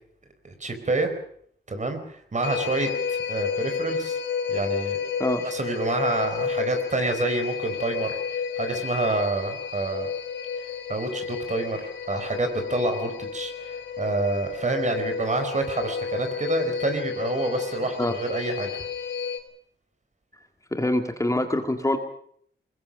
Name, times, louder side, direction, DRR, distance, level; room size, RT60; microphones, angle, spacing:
voice 1, 0.4-1.1 1.7-4.2 4.5-5.0 5.4-10.1 10.6-18.7, right 2 dB, 40° right, 7 dB, 4.4 m, -28 dB
sound 1, 2.4-19.4, left 6 dB, 85° left, 3.9 m, -31 dB
voice 2, 20.7-22.0, left 1 dB, 15° left, 5 dB, 2.0 m, -24 dB
23.5 x 20.5 x 6.3 m, 0.63 s
wide cardioid pair, 115°, 18 cm